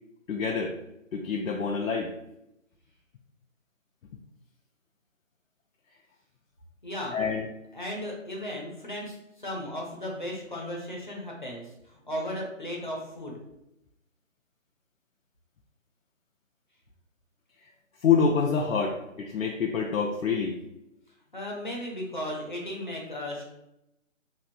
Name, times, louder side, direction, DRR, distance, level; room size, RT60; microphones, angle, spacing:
voice 1, 0.3-0.8 1.1-2.1 7.1-7.5 18.0-20.6, left 6 dB, 85° left, 0 dB, 0.6 m, -26 dB
voice 2, 6.8-7.1 7.7-13.4 21.3-23.4, left 1 dB, 40° left, -2 dB, 0.6 m, -35 dB
3.1 x 2.6 x 2.5 m, 0.87 s
hypercardioid pair, 175°, 40 cm